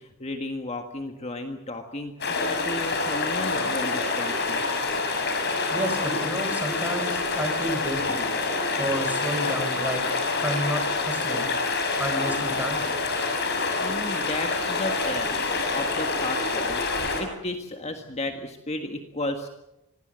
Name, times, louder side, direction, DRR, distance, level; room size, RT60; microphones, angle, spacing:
voice 1, 0.0-4.6 8.7-8.8 13.8-15.3 15.7-16.8 17.2-19.5, left 2 dB, 30° left, 5 dB, 1.7 m, -33 dB
sound 1, 2.2-17.2, left 3 dB, 50° left, 6.2 m, -27 dB
voice 2, 5.7-8.2 8.8-10.0 10.4-11.5 12.0-12.9, equal, 5° right, 6 dB, 4.5 m, -31 dB
25.5 x 19.0 x 7.7 m, 0.91 s
head